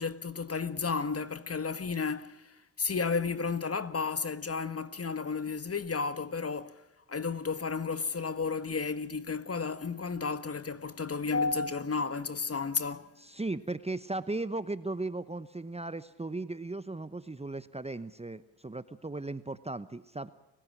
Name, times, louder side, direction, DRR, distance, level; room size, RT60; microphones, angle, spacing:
voice 1, 0.0-6.8 7.1-13.1, left 4 dB, 35° left, 1.5 m, -32 dB
voice 2, 13.2-20.3, right 2 dB, 15° right, 0.9 m, -37 dB
30.0 x 16.5 x 6.1 m
cardioid pair, 65°, 42 cm